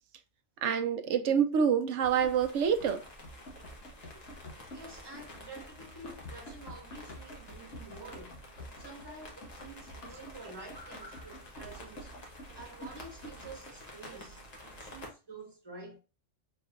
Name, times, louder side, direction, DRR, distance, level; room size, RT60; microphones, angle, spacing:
voice 1, 0.6-3.0, right 7 dB, 70° right, 0.9 m, -27 dB
Run, 2.0-13.7, equal, 70° left, 1.3 m, -49 dB
sound 1, 2.0-15.1, left 1 dB, 35° left, 1.0 m, -50 dB
voice 2, 4.7-8.4 8.7-12.1 12.6-16.0, right 2 dB, 20° right, 1.2 m, -49 dB
4.4 x 3.2 x 2.4 m
omnidirectional pair, 1.3 m